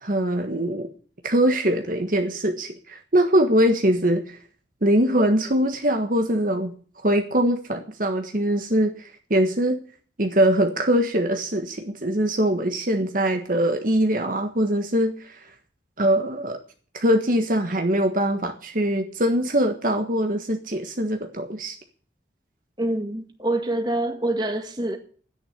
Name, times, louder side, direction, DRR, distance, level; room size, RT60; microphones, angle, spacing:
voice 1, 0.0-0.9 1.2-4.4 4.8-6.7 7.0-9.8 10.2-15.4 16.0-16.6 16.9-21.8, right 1 dB, 45° right, 1.5 m, -22 dB
voice 2, 22.8-25.0, right 1 dB, 25° right, 1.9 m, -26 dB
12.0 x 10.0 x 7.8 m
head